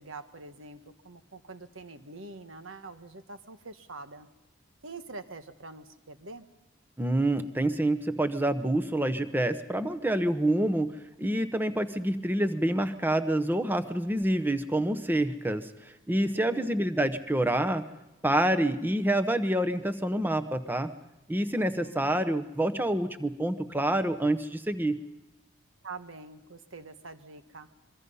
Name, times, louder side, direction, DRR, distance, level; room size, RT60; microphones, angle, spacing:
voice 1, 0.0-4.3 4.8-6.5 16.3-17.0 21.5-22.2 25.8-27.7, right 3 dB, 70° right, 9 dB, 1.3 m, -45 dB
voice 2, 7.0-17.9 18.2-20.9 21.3-25.0, right 1 dB, 10° right, 10 dB, 0.9 m, -27 dB
26.0 x 23.5 x 5.5 m, 0.98 s
head